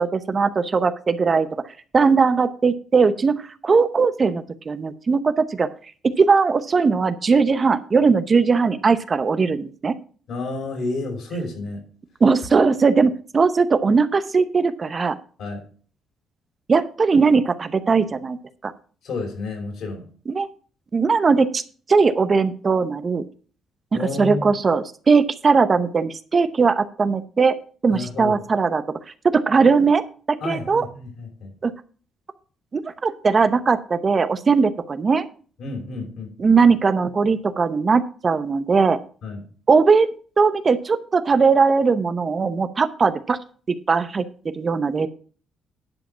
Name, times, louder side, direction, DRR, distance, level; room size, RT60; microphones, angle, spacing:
voice 1, 0.0-1.5 1.9-5.7 6.2-9.9 12.2-15.2 16.7-18.4 18.6-18.7 20.3-20.5 20.9-21.6 21.9-23.2 23.9-27.6 27.8-28.8 29.2-30.0 30.3-30.8 31.6-31.7 32.7-35.3 36.4-39.0 39.7-40.1 40.4-43.4 43.7-44.2 44.6-45.1, right 4 dB, 35° right, 12 dB, 0.8 m, -19 dB
voice 2, 10.3-11.8 15.4-15.6 19.0-20.0 23.9-24.6 27.9-28.4 30.4-31.5 35.6-36.3 39.2-39.4, left 2 dB, 70° left, 1 dB, 5.4 m, -30 dB
10.5 x 4.9 x 7.3 m, 0.41 s
cardioid pair, 90°, 0 cm